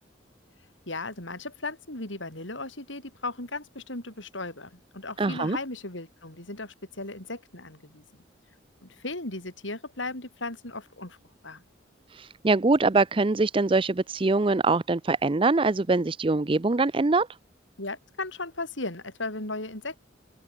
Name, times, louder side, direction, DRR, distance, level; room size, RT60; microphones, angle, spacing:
voice 1, 0.9-8.0 8.8-11.2 11.4-11.6 17.8-20.0, left 2 dB, 75° left, 6.6 m, -36 dB
voice 2, 5.2-5.6 12.1-17.3, right 3 dB, 25° right, 0.5 m, -23 dB
open air
head